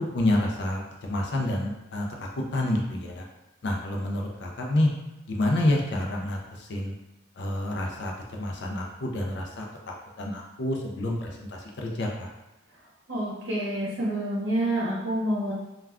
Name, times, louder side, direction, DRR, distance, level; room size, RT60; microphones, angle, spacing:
voice 1, 0.1-2.1 2.5-3.2 3.6-4.9 5.3-6.9 7.4-12.3, left 1 dB, 55° left, 0 dB, 0.4 m, -28 dB
voice 2, 13.1-15.5, right 1 dB, 70° right, -6 dB, 0.7 m, -28 dB
2.3 x 2.2 x 3.4 m, 0.97 s
head